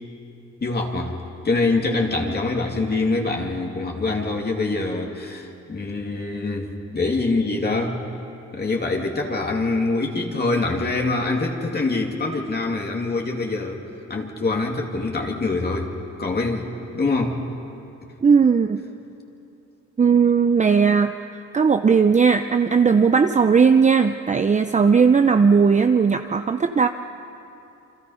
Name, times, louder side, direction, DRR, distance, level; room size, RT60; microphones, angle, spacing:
voice 1, 0.6-1.2 1.4-8.0 8.5-13.8 14.1-15.9 16.2-16.7 16.9-17.4, left 3 dB, 35° left, 0 dB, 2.7 m, -24 dB
voice 2, 18.2-18.8 20.0-21.1 21.5-26.9, right 5 dB, 25° right, 8 dB, 0.7 m, -17 dB
28.5 x 24.5 x 5.7 m, 2.8 s
cardioid pair, 90°, 30 cm